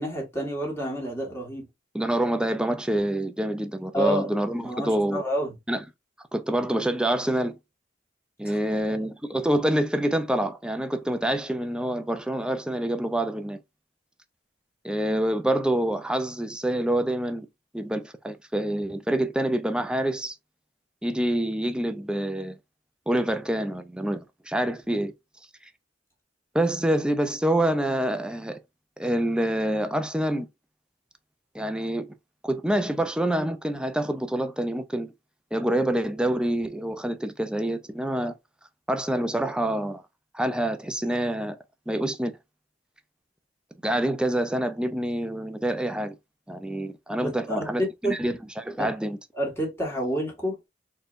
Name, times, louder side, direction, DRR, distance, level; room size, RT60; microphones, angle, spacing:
voice 1, 0.0-1.6 3.9-4.3 4.6-5.5 8.4-8.9 47.2-48.2 48.8-48.9 49.3-50.6, equal, 15° left, 1.6 m, -29 dB
voice 2, 1.9-5.2 5.7-5.8 6.3-7.6 8.4-13.6 14.8-17.5 17.7-20.4 21.0-22.6 23.1-25.1 26.5-28.6 29.0-30.5 31.5-32.1 32.4-35.1 35.5-38.3 38.9-40.0 40.3-41.6 41.9-42.4 43.8-46.1 46.5-49.2, right 1 dB, 5° right, 0.4 m, -26 dB
4.2 x 3.2 x 2.5 m
head